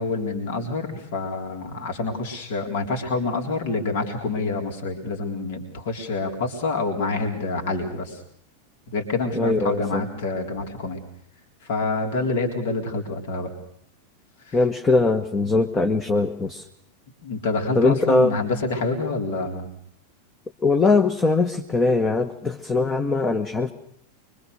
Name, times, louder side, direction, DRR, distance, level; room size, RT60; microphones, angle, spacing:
voice 1, 0.0-8.2 8.9-11.0 11.6-13.5 14.5-14.6 17.2-19.7, left 3 dB, 55° left, 3 dB, 3.8 m, -27 dB
voice 2, 9.3-10.0 14.5-16.6 17.7-18.3 20.6-23.7, left 3 dB, 15° left, 6 dB, 1.3 m, -21 dB
25.0 x 23.5 x 6.6 m, 0.66 s
figure-of-eight pair, 90°, 0 cm